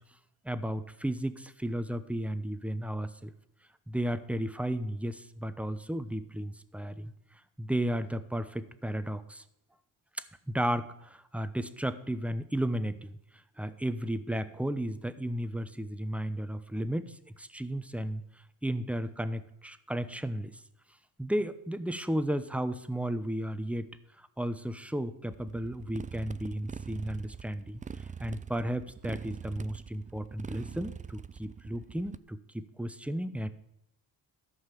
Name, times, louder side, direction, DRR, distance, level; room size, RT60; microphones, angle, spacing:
voice 1, 0.4-3.3 3.9-7.1 7.6-9.4 10.2-13.2 13.6-18.2 18.6-20.6 21.2-23.9 24.2-27.8 28.2-33.5, right 1 dB, 5° right, 12 dB, 0.8 m, -34 dB
Motorcycle, 25.3-32.2, right 6 dB, 20° right, 0.3 m, -43 dB
13.5 x 5.6 x 6.9 m, 0.82 s
cardioid pair, 70°, 44 cm